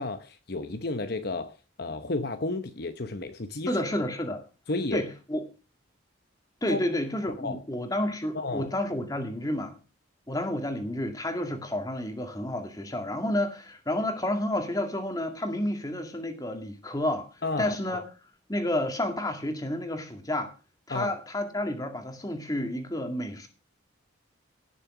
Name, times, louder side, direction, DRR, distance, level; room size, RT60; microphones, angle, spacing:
voice 1, 0.0-3.7 4.7-5.1 6.7-6.8 7.4-7.6 8.3-8.7 17.4-18.0 20.9-21.1, left 2 dB, 50° left, 0.9 m, -32 dB
voice 2, 3.7-4.4 4.9-5.4 6.6-9.8 10.3-18.0 18.5-20.5 20.9-23.5, left 1 dB, 20° left, 2.1 m, -30 dB
17.5 x 6.8 x 6.0 m
head